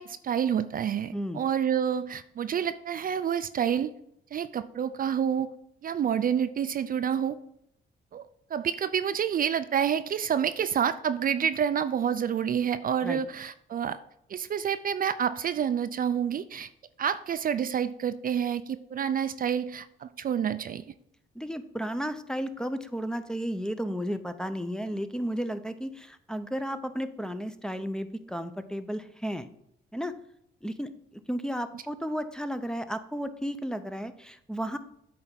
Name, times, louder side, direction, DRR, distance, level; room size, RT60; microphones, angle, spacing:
voice 1, 0.0-3.9 4.3-5.5 5.8-7.4 8.1-8.3 8.5-14.0 14.3-16.7 17.0-20.8 31.7-31.8, right 8 dB, 45° right, 12 dB, 0.4 m, -28 dB
voice 2, 1.1-1.4 13.0-13.2 21.4-29.5 29.9-30.1 30.6-30.9 31.3-34.8, equal, 5° left, 10 dB, 0.6 m, -33 dB
8.7 x 3.4 x 5.8 m, 0.73 s
cardioid pair, 90°, 20 cm